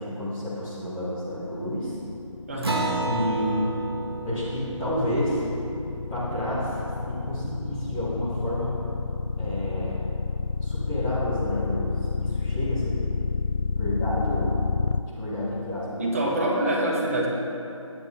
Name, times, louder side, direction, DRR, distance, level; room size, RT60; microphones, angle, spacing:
voice 1, 0.0-2.0 3.0-3.5 4.2-5.4 6.1-6.8 7.1-8.8 9.4-10.0 10.6-13.0 13.8-14.6 15.1-16.1, left 1 dB, 5° left, -14 dB, 0.7 m, -30 dB
sound 1, 1.9-15.0, left 4 dB, 65° left, 0.4 m, -29 dB
voice 2, 2.5-2.9 16.0-17.3, right 1 dB, 25° right, -3 dB, 1.5 m, -25 dB
Acoustic guitar, 2.6-7.5, right 3 dB, 50° right, 1.1 m, -33 dB
19.0 x 9.5 x 3.4 m, 2.8 s
figure-of-eight pair, 160°, 17 cm